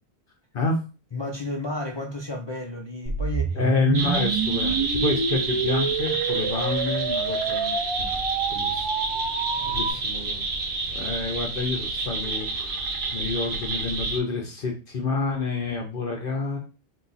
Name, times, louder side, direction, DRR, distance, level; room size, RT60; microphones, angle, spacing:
voice 1, 1.1-3.6 9.5-9.9, left 2 dB, 35° left, 0.5 m, -33 dB
sound 1, 3.1-9.9, right 5 dB, 45° right, 0.4 m, -27 dB
voice 2, 3.5-8.2 8.5-8.9 9.2-9.3 9.7-10.5 10.9-16.6, left 3 dB, 60° left, 0.9 m, -29 dB
sound 2, 3.9-14.2, right 3 dB, 75° right, 1.1 m, -29 dB
4.4 x 2.3 x 4.0 m
omnidirectional pair, 1.1 m